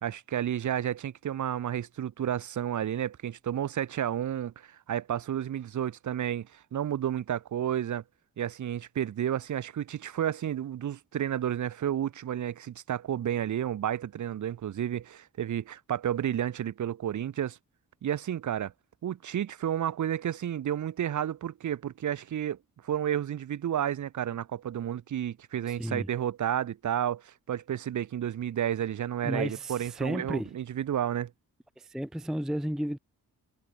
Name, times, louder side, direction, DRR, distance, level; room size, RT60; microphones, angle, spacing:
voice 1, 0.0-8.0 8.4-17.6 18.0-18.7 19.0-22.6 22.8-31.3, right 10 dB, 55° right, 0.6 m, -31 dB
voice 2, 25.6-26.1 29.2-30.5 31.8-33.0, equal, ahead, 0.5 m, -33 dB
wide cardioid pair, 145°, 36 cm